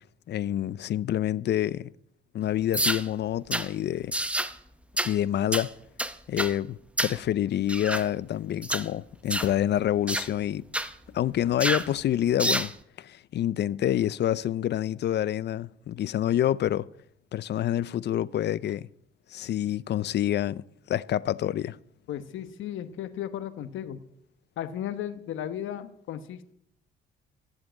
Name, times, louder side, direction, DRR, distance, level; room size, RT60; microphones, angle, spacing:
voice 1, 0.3-1.9 2.3-4.1 5.0-5.7 6.3-10.6 11.1-16.9 17.3-18.9 19.3-20.6 20.9-21.8, left 11 dB, 60° left, 0.5 m, -27 dB
sound 1, 2.7-3.0 3.5-3.7 4.1-4.5 5.0-5.1 5.5-5.7 6.0-6.5 7.0-7.2 7.7-8.1 8.6-8.9 9.3-9.5 10.1-10.3 10.7-10.9 11.6-11.9 12.4-12.7, right 1 dB, 5° right, 0.8 m, -28 dB
voice 2, 22.1-24.0 24.6-26.5, left 10 dB, 80° left, 1.1 m, -35 dB
14.0 x 7.5 x 8.9 m
cardioid pair, 90°, 20 cm